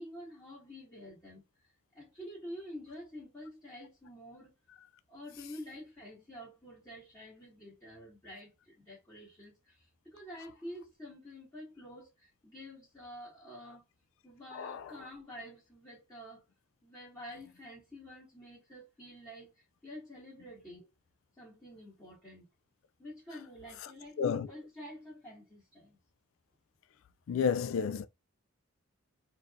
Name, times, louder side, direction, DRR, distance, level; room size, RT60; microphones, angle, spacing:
voice 1, 0.0-1.7 1.9-4.5 5.1-13.8 14.2-16.4 16.8-20.9 21.4-22.5 23.0-26.0, equal, 15° left, 1.8 m, -48 dB
voice 2, 24.2-24.5 27.3-28.1, left 6 dB, 65° left, 0.3 m, -30 dB
4.4 x 3.6 x 2.5 m
head